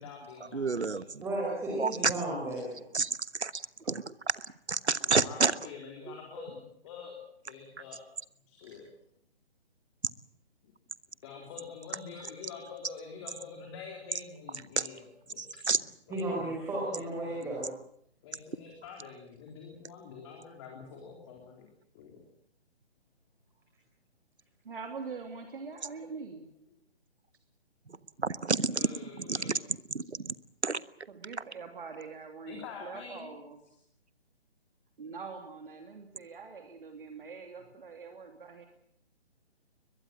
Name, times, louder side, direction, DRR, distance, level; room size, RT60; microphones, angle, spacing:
voice 1, 0.0-1.1 5.0-7.1 7.5-8.0 8.5-8.9 11.2-17.3 18.2-21.7 21.9-22.2 25.5-25.6 28.7-29.6 32.5-33.3, left 5 dB, 25° left, 1 dB, 3.9 m, -47 dB
voice 2, 0.5-1.2 1.7-2.1 2.9-4.3 4.7-5.5 6.1-6.2 14.8-14.9 15.4-15.8 27.9-28.9 29.2-29.6 29.9-30.3 30.6-30.8, right 4 dB, 80° right, 16 dB, 1.3 m, -30 dB
voice 3, 1.2-2.8 3.8-3.9 16.1-17.7, right 1 dB, 10° right, -3 dB, 4.8 m, -34 dB
voice 4, 24.6-26.4 30.7-33.6 35.0-38.7, right 5 dB, 55° right, 4 dB, 3.1 m, -44 dB
22.0 x 22.0 x 7.6 m, 0.69 s
figure-of-eight pair, 140°, 33 cm